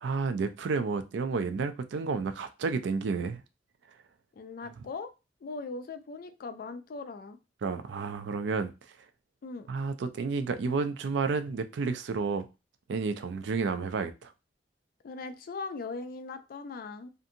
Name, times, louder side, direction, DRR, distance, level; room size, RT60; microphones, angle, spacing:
voice 1, 0.0-3.4 4.6-4.7 7.6-8.7 9.7-12.5 12.9-14.3, right 4 dB, 70° right, 0.4 m, -31 dB
voice 2, 4.4-5.1 5.4-7.4 9.4-9.7 15.0-17.1, left 4 dB, 55° left, 0.4 m, -39 dB
2.6 x 2.5 x 2.6 m
head